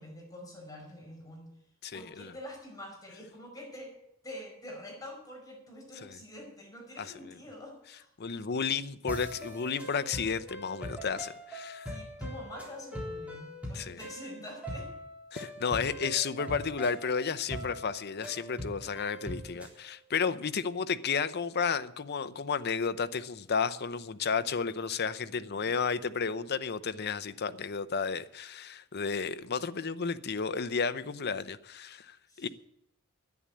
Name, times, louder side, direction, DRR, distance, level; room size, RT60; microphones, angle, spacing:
voice 1, 0.0-1.5 1.9-3.9 4.2-8.1 11.8-14.9 25.3-25.8 32.3-32.5, left 1 dB, 20° left, 5.2 m, -46 dB
voice 2, 1.8-2.3 6.0-6.2 7.0-7.1 8.2-11.9 13.7-14.0 15.3-32.5, left 5 dB, 50° left, 0.7 m, -32 dB
sound 1, 9.1-19.8, equal, 5° right, 3.6 m, -42 dB
11.0 x 9.9 x 8.5 m
head